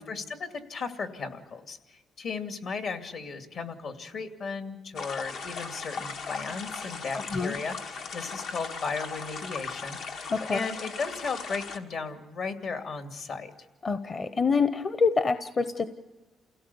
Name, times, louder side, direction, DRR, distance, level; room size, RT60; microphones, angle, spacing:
voice 1, 0.0-13.5, left 4 dB, 65° left, 6 dB, 2.5 m, -36 dB
sound 1, 4.9-11.8, left 5 dB, 85° left, 1.7 m, -38 dB
voice 2, 7.1-7.6 10.3-10.6 13.8-15.9, left 4 dB, 40° left, 10 dB, 0.9 m, -26 dB
28.5 x 17.0 x 7.0 m, 1.3 s
cardioid pair, 90°, 0 cm